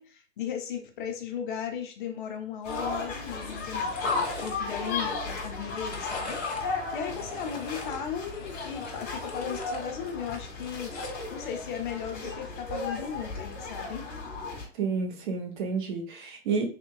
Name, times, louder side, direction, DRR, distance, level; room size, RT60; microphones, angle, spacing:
voice 1, 0.0-10.9 11.3-14.1, left 8 dB, 45° left, 0.6 m, -36 dB
sound 1, 2.6-2.9 3.2-4.9 5.5-6.7 7.0-9.8 10.2-11.3 12.5-12.7, left 2 dB, 60° left, 1.1 m, -44 dB
sound 2, 2.6-14.6, left 3 dB, 25° left, 1.5 m, -35 dB
voice 2, 14.8-16.7, right 5 dB, 45° right, 0.8 m, -30 dB
3.5 x 2.9 x 2.3 m
figure-of-eight pair, 105°, 36 cm